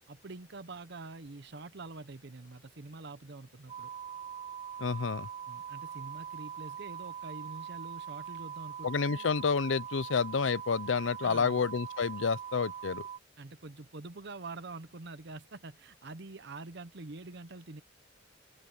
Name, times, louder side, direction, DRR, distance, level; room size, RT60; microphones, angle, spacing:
voice 1, 0.1-3.9 5.5-9.3 11.2-11.6 13.4-17.8, right 3 dB, 65° right, 0.9 m, -46 dB
sound 1, 3.7-13.2, right 8 dB, 25° right, 1.0 m, -42 dB
voice 2, 4.8-5.3 8.8-13.0, left 5 dB, 85° left, 0.6 m, -29 dB
open air
head